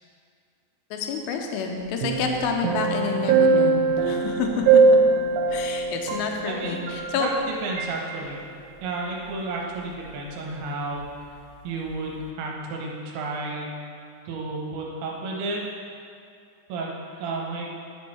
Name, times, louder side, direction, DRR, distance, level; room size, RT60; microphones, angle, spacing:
voice 1, 0.9-4.8 5.5-7.3, left 5 dB, 80° left, 3 dB, 2.6 m, -29 dB
sound 1, 2.0-7.5 7.8-7.9, right 4 dB, 90° right, 3.1 m, -21 dB
voice 2, 6.5-6.9 7.1-8.4 8.8-11.1 11.6-13.7 14.3-15.6 16.7-16.9 17.2-17.7, right 3 dB, 75° right, -1 dB, 2.6 m, -32 dB
10.0 x 6.1 x 4.3 m, 2.3 s
omnidirectional pair, 5.5 m